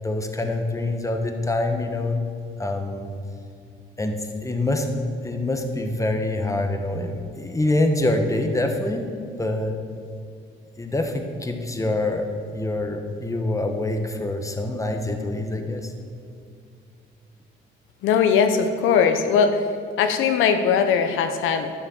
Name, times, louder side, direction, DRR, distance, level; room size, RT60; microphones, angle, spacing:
voice 1, 0.0-2.2 2.6-3.1 4.0-4.9 5.2-9.1 9.4-9.8 10.8-15.9, left 2 dB, 15° left, 5 dB, 1.3 m, -25 dB
voice 2, 18.0-19.6 20.0-21.7, left 6 dB, 90° left, 7 dB, 0.8 m, -20 dB
11.5 x 6.8 x 7.1 m, 2.4 s
cardioid pair, 90°, 20 cm